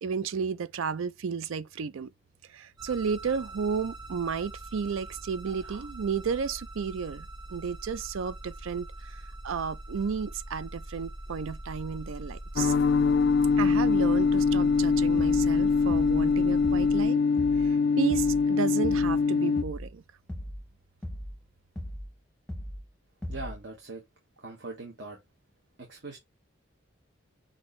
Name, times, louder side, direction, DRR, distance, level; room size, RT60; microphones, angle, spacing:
voice 1, 0.0-2.1 2.5-12.7 13.6-17.2 17.6-20.0, right 6 dB, 75° right, 0.4 m, -33 dB
sound 1, 2.8-17.0, right 1 dB, 25° right, 1.7 m, -42 dB
sound 2, 12.6-19.6, left 5 dB, 55° left, 0.3 m, -23 dB
sound 3, 15.2-15.5 15.9-16.3 16.6-17.0 17.4-17.7 18.1-18.5 18.8-19.2 19.6-19.9 20.3-20.7 21.0-21.4 21.8-22.1 22.5-22.9 23.2-23.6, equal, 5° left, 0.8 m, -38 dB
voice 2, 23.3-24.0 24.4-25.2 25.8-26.2, right 2 dB, 55° right, 1.1 m, -41 dB
6.1 x 2.6 x 3.1 m
head